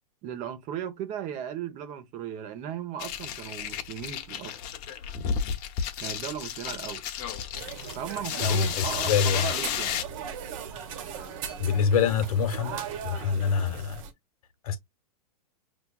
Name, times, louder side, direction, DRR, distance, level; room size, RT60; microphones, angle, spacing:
voice 1, 0.2-4.5 6.0-7.0 7.9-10.0 13.2-13.4, right 9 dB, 40° right, 1.0 m, -36 dB
sound 1, 3.0-10.0, left 8 dB, 40° left, 0.9 m, -32 dB
sound 2, 7.5-14.1, right 7 dB, 55° right, 1.2 m, -39 dB
voice 2, 8.4-9.5 11.6-14.0 14.6-14.8, left 6 dB, 70° left, 1.2 m, -26 dB
5.6 x 3.0 x 2.3 m
hypercardioid pair, 120°, 19 cm